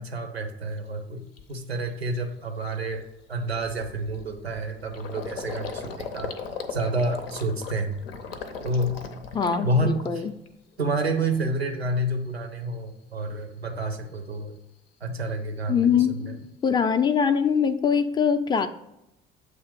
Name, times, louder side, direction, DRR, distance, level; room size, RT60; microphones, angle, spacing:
voice 1, 0.0-3.0 3.3-6.3 6.7-8.0 8.6-9.0 9.6-10.3 10.8-14.6 15.0-16.3, right 1 dB, 90° right, 0.6 m, -29 dB
Gurgling, 0.8-0.9 1.4-1.6 2.0-2.2 2.4-10.5 10.8-11.4, left 5 dB, 75° left, 0.6 m, -38 dB
voice 2, 9.3-10.3 15.7-16.4 16.6-18.7, left 7 dB, 15° left, 0.4 m, -23 dB
7.5 x 3.0 x 4.7 m
figure-of-eight pair, 55°, 30 cm